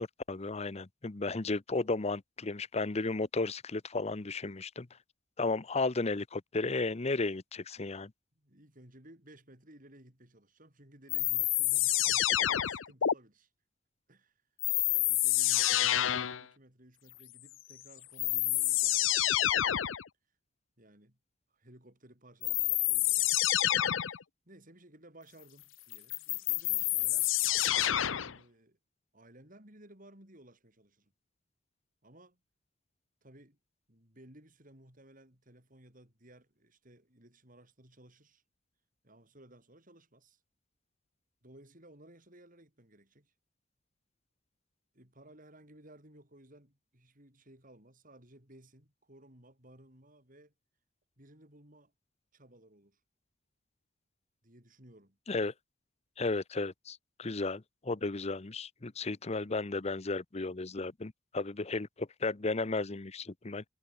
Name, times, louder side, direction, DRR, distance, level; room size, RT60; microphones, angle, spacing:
voice 1, 0.0-4.9 5.4-8.1 55.3-55.5 56.2-63.6, left 3 dB, 35° left, 0.8 m, -34 dB
voice 2, 8.4-13.5 14.1-14.4 14.8-19.6 20.8-21.2 21.5-23.3 24.0-24.2 24.5-27.3 28.1-28.8 29.1-31.1 32.0-32.4 33.2-33.6 33.9-38.4 39.0-40.4 41.4-43.3 44.9-50.5 51.2-51.9 52.3-53.0 54.4-55.2, right 1 dB, 45° right, 7.3 m, -58 dB
sound 1, 11.1-13.1 14.6-16.4 17.7-17.8 18.2-20.0 22.4-24.2 25.9-28.4, left 13 dB, 80° left, 0.7 m, -28 dB
head